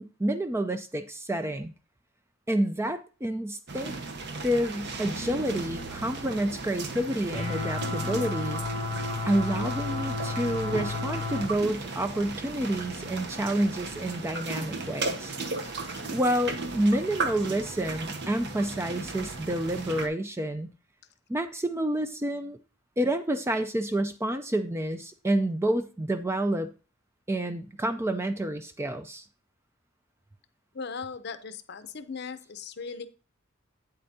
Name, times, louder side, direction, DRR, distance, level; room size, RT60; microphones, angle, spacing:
voice 1, 0.0-1.7 2.5-4.0 4.4-8.6 9.3-15.4 16.1-20.7 21.3-22.6 23.0-26.7 27.3-29.3, right 1 dB, 10° right, 9 dB, 0.4 m, -29 dB
sound 1, 3.7-20.1, right 3 dB, 50° right, 0.9 m, -36 dB
sound 2, 7.3-11.5, left 3 dB, 70° right, 2.2 m, -32 dB
voice 2, 15.6-16.0 30.7-33.1, left 5 dB, 50° left, 11 dB, 0.6 m, -39 dB
8.7 x 7.8 x 2.7 m, 0.35 s
head